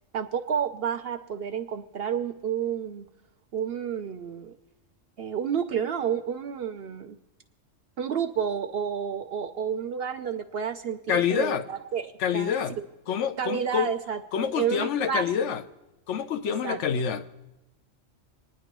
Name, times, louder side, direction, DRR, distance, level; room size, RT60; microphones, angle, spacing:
voice 1, 0.1-3.1 3.5-4.6 5.2-7.2 8.0-12.5 13.4-15.5 16.6-16.8, right 7 dB, 60° right, 0.7 m, -30 dB
voice 2, 11.1-11.6 12.2-12.8 13.1-13.9 14.3-15.6 16.1-17.4, left 8 dB, 70° left, 1.0 m, -27 dB
26.5 x 9.9 x 3.0 m
omnidirectional pair, 1.3 m